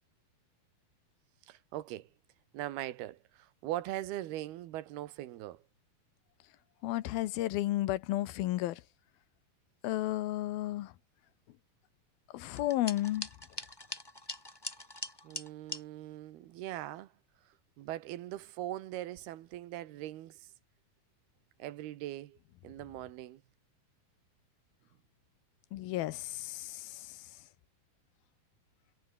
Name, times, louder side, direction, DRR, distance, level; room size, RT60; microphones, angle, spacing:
voice 1, 1.5-2.1 2.5-5.6 15.2-17.1 17.8-20.5 21.6-22.4 22.6-23.4, right 14 dB, 90° right, 3.2 m, -41 dB
voice 2, 6.8-8.8 9.8-10.9 12.3-13.3 25.7-26.8, left 15 dB, 80° left, 2.8 m, -32 dB
sound 1, 12.6-15.8, left 1 dB, 10° left, 1.7 m, -42 dB
omnidirectional pair, 4.4 m